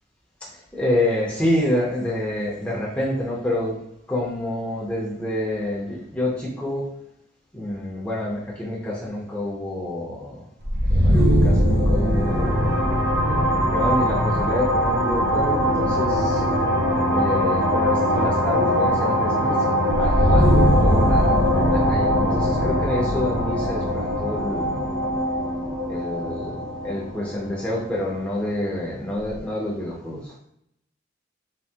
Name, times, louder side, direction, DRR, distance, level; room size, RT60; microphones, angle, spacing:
voice 1, 0.4-3.8 4.1-6.8 7.5-10.4 10.9-12.7 13.2-16.4 17.1-24.9 25.9-30.4, left 1 dB, 5° left, -6 dB, 0.5 m, -28 dB
sound 1, 10.6-28.3, equal, 50° right, 0.7 m, -21 dB
3.3 x 2.0 x 2.7 m, 0.76 s
head